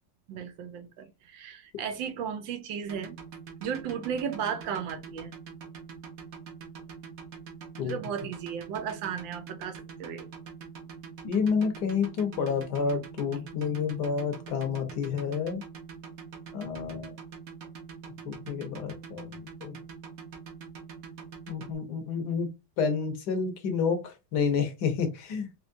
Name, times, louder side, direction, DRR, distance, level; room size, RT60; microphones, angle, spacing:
voice 1, 0.3-3.2 3.6-5.3 7.8-10.3, right 7 dB, 85° right, 1.5 m, -35 dB
sound 1, 2.8-21.7, right 6 dB, 55° right, 1.3 m, -44 dB
voice 2, 11.2-15.6 16.5-17.1 18.2-19.8 21.5-22.5 22.8-25.5, left 6 dB, 65° left, 1.3 m, -29 dB
4.6 x 2.9 x 2.6 m
omnidirectional pair, 2.0 m